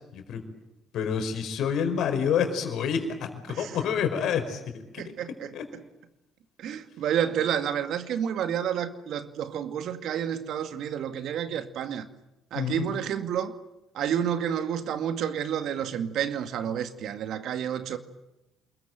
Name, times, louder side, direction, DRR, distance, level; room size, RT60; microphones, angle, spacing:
voice 1, 0.9-4.6 5.0-5.1 5.5-5.6 12.5-12.9, left 7 dB, 60° left, 4.9 m, -28 dB
voice 2, 5.0-5.5 6.6-12.1 12.5-13.5 13.9-18.0, right 9 dB, 60° right, 2.2 m, -30 dB
29.0 x 22.0 x 9.1 m
hypercardioid pair, 55°, 0 cm